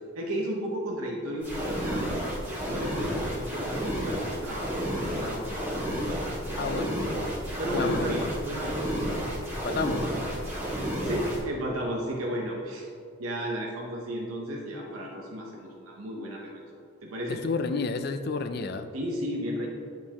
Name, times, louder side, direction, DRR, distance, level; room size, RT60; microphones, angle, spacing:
voice 1, 0.1-2.0 2.7-4.7 4.9-5.7 6.5-6.9 7.6-9.2 11.0-12.9 13.2-16.6 17.0-17.4 18.9-19.7, equal, 85° right, -1 dB, 0.7 m, -33 dB
sound 1, 1.4-11.4, equal, 10° right, 1.5 m, -31 dB
voice 2, 6.5-7.0 7.7-8.3 9.6-10.1 17.3-18.9, left 4 dB, 50° left, 9 dB, 0.4 m, -31 dB
9.3 x 4.5 x 2.9 m, 2.4 s
head